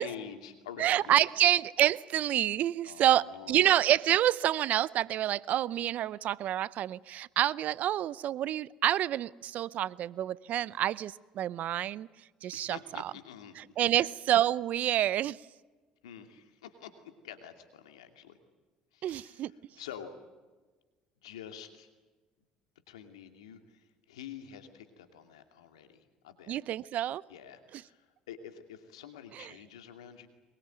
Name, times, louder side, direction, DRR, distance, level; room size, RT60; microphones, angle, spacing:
voice 1, 0.0-1.2 2.8-3.7 12.5-14.1 16.0-16.9 17.2-18.3 18.9-19.4 19.8-20.1 21.2-21.9 22.9-26.5 27.3-30.3, left 8 dB, 90° left, 6 dB, 2.6 m, -47 dB
voice 2, 0.8-12.1 12.4-13.1 13.6-15.4 19.0-19.5 26.5-27.2 27.7-27.8 29.3-29.5, right 12 dB, 60° right, 21 dB, 0.7 m, -28 dB
23.0 x 22.0 x 9.2 m, 1.3 s
hypercardioid pair, 65°, 3 cm